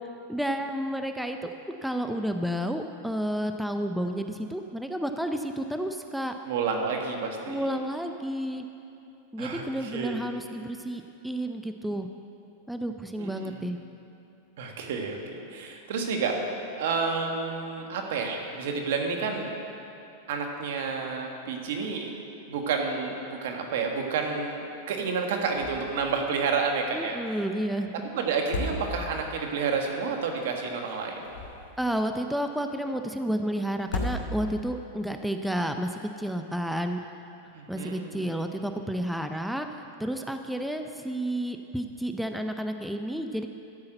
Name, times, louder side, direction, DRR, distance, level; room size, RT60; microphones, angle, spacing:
voice 1, 0.3-1.5 1.8-6.3 7.5-8.7 9.3-12.1 12.7-13.8 26.9-27.9 31.8-35.9 36.2-37.0 37.7-39.7 40.0-43.5, right 1 dB, ahead, 6 dB, 0.5 m, -31 dB
voice 2, 6.4-7.7 9.4-10.2 13.2-13.6 14.6-19.5 20.3-22.1 22.5-27.2 27.9-31.3 37.5-38.3, right 5 dB, 70° right, 2 dB, 1.6 m, -30 dB
sound 1, 25.5-26.0 26.3-26.4 28.3-29.3 31.0-31.9 33.8-34.7, left 2 dB, 80° left, 2.6 m, -34 dB
13.0 x 5.6 x 7.9 m, 2.7 s
hypercardioid pair, 115°, 0 cm